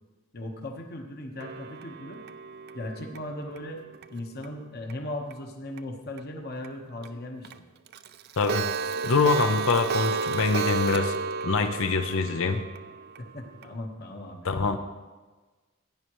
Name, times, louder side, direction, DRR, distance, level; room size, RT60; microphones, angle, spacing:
voice 1, 0.3-2.2 2.7-3.8 4.1-7.6 13.2-14.5, left 1 dB, 45° left, 3 dB, 1.2 m, -37 dB
Clock, 1.4-4.5 4.9-5.0 5.3-5.4 5.8-5.9 6.2-6.3 6.6-6.7 7.0-7.1 7.4-7.5 7.9-13.7, right 5 dB, 45° right, 0.4 m, -32 dB
voice 2, 8.4-8.7 9.0-11.2 11.4-12.6 14.4-14.8, left 4 dB, 65° left, 8 dB, 0.6 m, -24 dB
16.0 x 9.7 x 3.1 m, 1.3 s
head